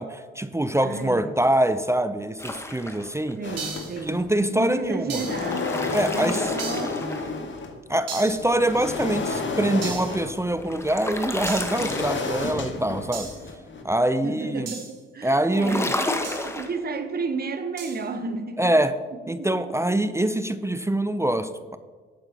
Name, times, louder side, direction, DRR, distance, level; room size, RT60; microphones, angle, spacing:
voice 1, 0.0-3.4 4.0-5.2 5.9-6.5 7.9-13.3 13.8-14.8 15.2-15.9 18.6-18.9 19.3-21.8, right 1 dB, 10° right, 11 dB, 0.6 m, -24 dB
voice 2, 0.8-1.3 3.4-4.2 4.5-7.1 14.2-15.9 16.3-18.7 19.3-20.0, right 4 dB, 35° right, 8 dB, 1.1 m, -32 dB
sound 1, 2.4-3.3 5.1-7.6 10.2-12.6 15.5-16.7, left 1 dB, 10° left, 1.3 m, -31 dB
sound 2, 3.4-4.4 4.8-7.8 8.3-13.8, left 3 dB, 40° left, 1.7 m, -31 dB
sound 3, 3.6-4.0 5.1-5.5 6.6-7.0 8.1-8.5 9.8-10.2 11.5-11.8 13.1-13.5 14.7-15.0 16.2-16.5 17.8-18.0, right 5 dB, 60° right, 2.0 m, -36 dB
12.5 x 8.7 x 3.0 m, 1.5 s
hypercardioid pair, 50°, 29 cm